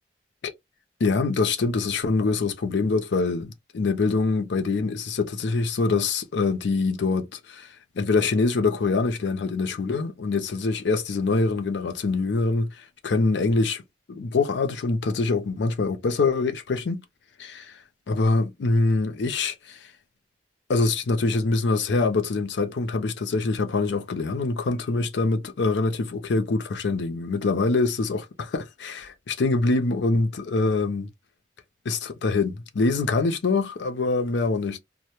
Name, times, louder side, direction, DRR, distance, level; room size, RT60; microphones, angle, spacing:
voice 1, 1.0-7.7 8.0-13.8 14.1-17.0 17.4-17.6 18.1-19.9 20.7-31.1 31.9-34.8, left 3 dB, 85° left, 0.5 m, -24 dB
2.1 x 2.0 x 2.9 m
head